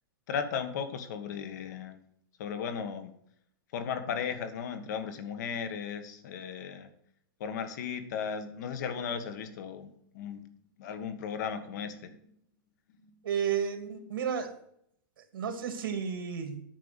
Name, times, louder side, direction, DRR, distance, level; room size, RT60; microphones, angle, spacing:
voice 1, 0.3-2.0 2.4-3.1 3.7-6.9 7.4-10.4 10.8-12.2, left 7 dB, 55° left, 9 dB, 1.6 m, -36 dB
voice 2, 13.2-14.5 15.3-16.6, right 7 dB, 75° right, 7 dB, 2.4 m, -32 dB
9.2 x 5.9 x 8.1 m, 0.70 s
supercardioid pair, 170°, 12 cm